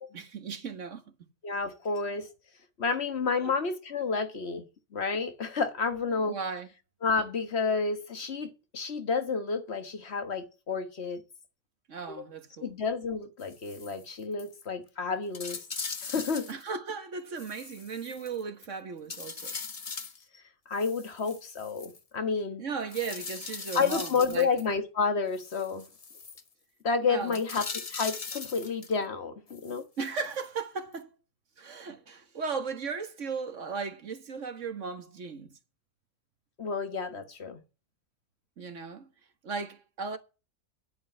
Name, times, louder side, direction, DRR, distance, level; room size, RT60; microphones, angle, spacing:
voice 1, 0.1-1.0 3.4-3.5 6.2-6.7 11.9-12.7 16.5-19.5 22.6-24.5 27.0-27.4 30.0-31.1 31.6-35.5 38.6-39.1 39.4-40.2, right 5 dB, 75° right, 1.8 m, -36 dB
voice 2, 1.4-2.3 2.8-6.4 7.0-11.2 12.1-12.2 12.6-15.6 16.0-16.5 20.3-22.6 23.7-25.9 26.8-29.8 36.6-37.6, left 4 dB, 55° left, 1.6 m, -30 dB
sound 1, 13.4-14.1 14.4-14.5 14.9-15.0 15.3-16.7 17.4-18.7 19.1-20.2 20.7-22.0 22.9-24.7 25.4-26.4 27.3-29.0 29.5-30.5 30.9-31.0, left 5 dB, 35° left, 0.8 m, -40 dB
10.5 x 8.4 x 7.9 m
omnidirectional pair, 1.3 m